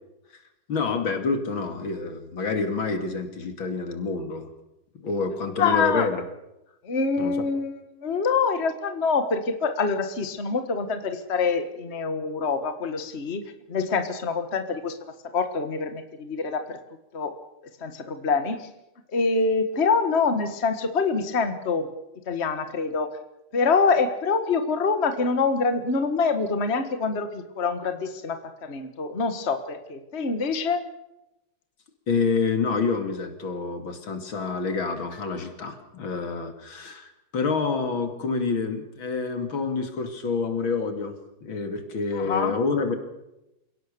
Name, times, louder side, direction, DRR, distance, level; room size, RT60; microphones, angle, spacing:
voice 1, 0.7-4.5 5.0-6.2 7.2-7.3 32.1-42.9, left 4 dB, 70° left, 7 dB, 3.2 m, -28 dB
voice 2, 5.6-6.1 6.8-13.4 13.7-15.0 15.3-16.8 17.1-17.3 17.8-18.7 19.1-21.9 22.3-23.1 23.5-30.8 42.1-42.5, left 4 dB, 35° left, 8 dB, 1.7 m, -25 dB
28.5 x 17.5 x 6.9 m, 0.91 s
omnidirectional pair, 2.3 m